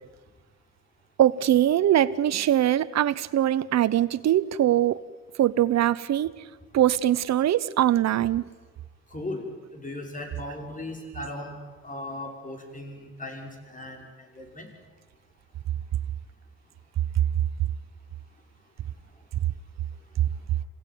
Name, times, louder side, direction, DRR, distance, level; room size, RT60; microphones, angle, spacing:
voice 1, 1.2-5.0 5.4-6.3 6.7-8.4, right 12 dB, 60° right, 15 dB, 0.9 m, -22 dB
voice 2, 9.1-9.5 9.7-11.6 11.8-14.7, left 1 dB, 25° left, 3 dB, 5.9 m, -37 dB
27.0 x 16.5 x 9.4 m, 1.4 s
cardioid pair, 90°, 30 cm